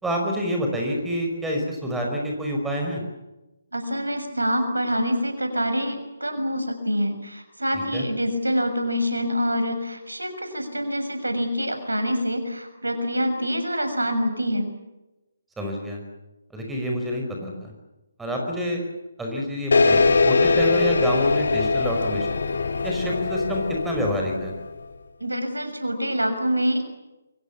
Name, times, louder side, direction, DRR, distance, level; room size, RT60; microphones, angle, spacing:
voice 1, 0.0-3.0 7.9-8.0 15.6-16.0 16.5-17.7 18.2-18.8 19.2-22.4 22.8-24.5, equal, 5° right, 1 dB, 5.3 m, -27 dB
voice 2, 3.7-14.7 25.2-26.8, equal, 75° right, 7 dB, 6.6 m, -26 dB
sound 1, 19.7-24.8, left 4 dB, 55° left, 2.3 m, -22 dB
29.0 x 23.5 x 7.2 m, 1.0 s
figure-of-eight pair, 140°, 0 cm